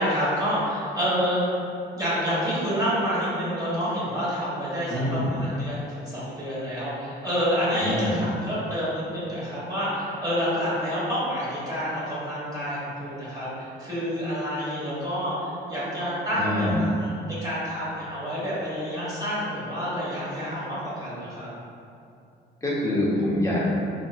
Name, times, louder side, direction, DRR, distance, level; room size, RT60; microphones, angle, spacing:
voice 1, 0.0-1.4 1.9-21.5, equal, 20° right, -9 dB, 1.5 m, -28 dB
voice 2, 4.9-5.3 7.8-8.2 16.3-16.8 22.6-23.7, left 1 dB, 15° left, -7 dB, 1.0 m, -25 dB
4.2 x 2.9 x 2.4 m, 2.6 s
cardioid pair, 90°, 20 cm